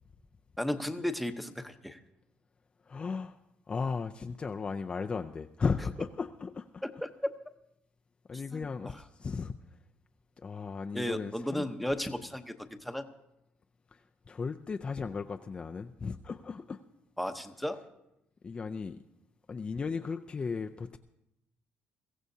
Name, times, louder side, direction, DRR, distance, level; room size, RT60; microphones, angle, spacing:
voice 1, 0.6-2.0 6.8-7.1 8.5-8.7 10.9-13.0 17.2-17.9, left 1 dB, ahead, 6 dB, 0.8 m, -34 dB
voice 2, 2.8-3.4 3.7-6.8 8.3-9.6 10.4-11.7 13.9-16.8 18.4-19.0 19.5-21.0, left 5 dB, 25° left, 5 dB, 0.4 m, -36 dB
22.5 x 15.5 x 2.8 m, 0.87 s
cardioid pair, 125°, 4 cm